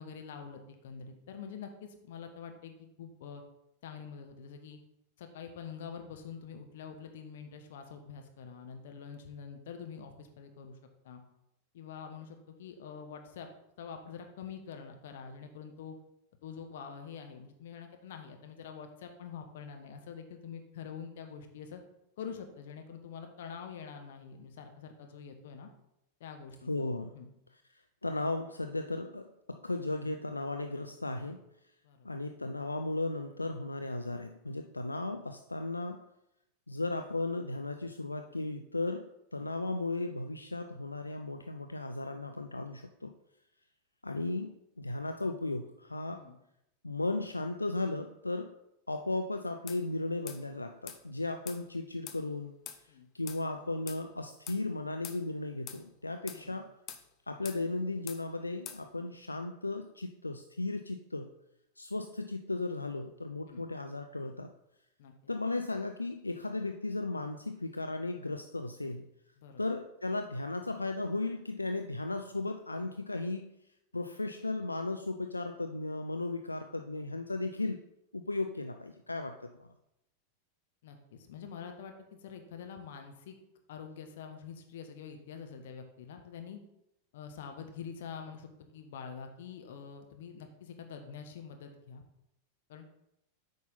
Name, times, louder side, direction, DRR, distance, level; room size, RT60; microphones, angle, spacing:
voice 1, 0.0-3.4 3.8-4.8 5.2-10.8 11.0-11.2 11.7-13.5 13.8-15.9 16.4-21.8 22.2-25.7 26.2-26.9 27.1-27.3 31.8-32.1 46.1-46.4 52.9-53.1 56.3-56.6 63.5-63.6 65.0-65.1 69.4-69.6 80.8-83.4 83.7-86.6 87.1-92.0 92.7-92.9, left 6 dB, 55° left, 5 dB, 1.1 m, -46 dB
voice 2, 26.7-27.1 28.0-31.4 32.0-36.0 36.7-43.1 44.0-46.2 46.8-48.5 48.9-52.6 52.8-56.7 57.3-61.3 61.8-64.5 65.3-69.0 69.6-73.5 73.9-77.8 78.1-79.7, left 2 dB, 80° left, 6 dB, 0.4 m, -36 dB
sound 1, 49.7-49.8 50.3-50.4 50.9-51.0 51.5-51.6 52.1-52.2 52.7-52.8 53.3-53.4 53.9-54.0 54.5-54.6 55.0-55.2 55.7-55.8 56.3-56.4 56.9-57.0 57.4-57.6 58.1-58.2 58.7-58.8, left 9 dB, 35° left, 0.7 m, -44 dB
8.6 x 5.4 x 4.0 m, 0.83 s
figure-of-eight pair, 90°, 0 cm